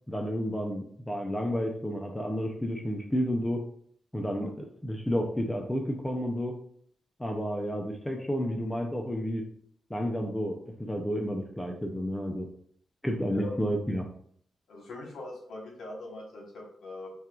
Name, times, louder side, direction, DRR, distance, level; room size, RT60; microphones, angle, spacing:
voice 1, 0.1-3.6 4.1-6.5 7.2-9.4 9.9-12.5 13.0-14.0, equal, 10° left, 2 dB, 0.4 m, -31 dB
voice 2, 14.7-17.1, left 2 dB, 80° left, -1 dB, 1.0 m, -42 dB
4.2 x 2.3 x 2.3 m, 0.62 s
cardioid pair, 80°, 0 cm